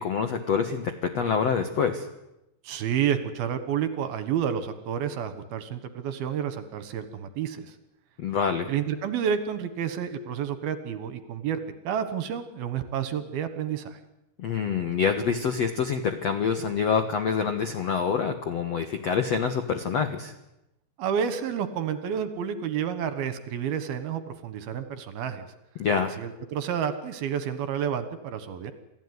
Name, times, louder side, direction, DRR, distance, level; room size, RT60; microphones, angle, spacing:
voice 1, 0.0-2.1 8.2-8.7 14.4-20.3 25.8-26.2, left 6 dB, 65° left, 7 dB, 1.6 m, -26 dB
voice 2, 2.6-7.8 8.7-11.6 11.8-14.0 21.0-25.5 26.2-28.7, right 8 dB, 65° right, 11 dB, 3.0 m, -30 dB
28.5 x 17.5 x 9.6 m, 0.90 s
omnidirectional pair, 5.1 m